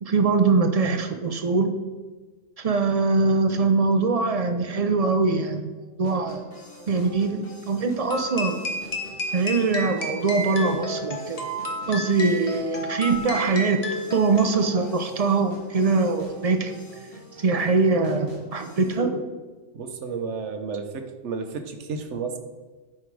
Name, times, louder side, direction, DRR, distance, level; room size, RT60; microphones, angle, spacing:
voice 1, 0.0-1.7 2.6-5.7 6.0-6.4 6.9-8.6 9.3-11.5 11.9-13.8 14.1-16.8 17.4-19.3, right 4 dB, 45° right, 6 dB, 0.5 m, -22 dB
sound 1, 6.0-19.0, equal, 45° left, 1.8 m, -45 dB
sound 2, 8.1-14.9, left 1 dB, 30° left, 1.0 m, -32 dB
voice 2, 19.7-22.4, right 5 dB, 70° right, 7 dB, 1.1 m, -32 dB
9.7 x 4.3 x 4.7 m, 1.3 s
omnidirectional pair, 1.3 m